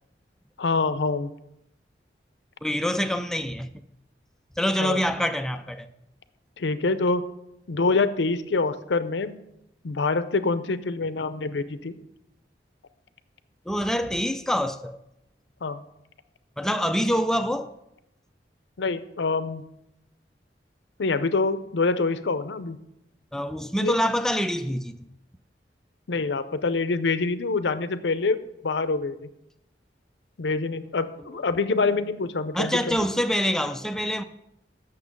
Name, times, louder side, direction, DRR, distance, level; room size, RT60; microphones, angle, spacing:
voice 1, 0.6-1.3 4.8-5.0 6.6-7.2 7.7-9.4 9.8-12.0 15.6-15.8 18.8-19.6 21.0-22.8 23.8-24.0 26.1-28.4 28.6-29.2 30.4-33.0, left 3 dB, 85° left, 0.6 m, -25 dB
voice 2, 2.6-3.8 4.6-5.9 13.7-15.0 16.6-17.7 23.3-25.1 32.5-34.2, equal, 5° left, 0.4 m, -26 dB
8.4 x 6.7 x 5.3 m
head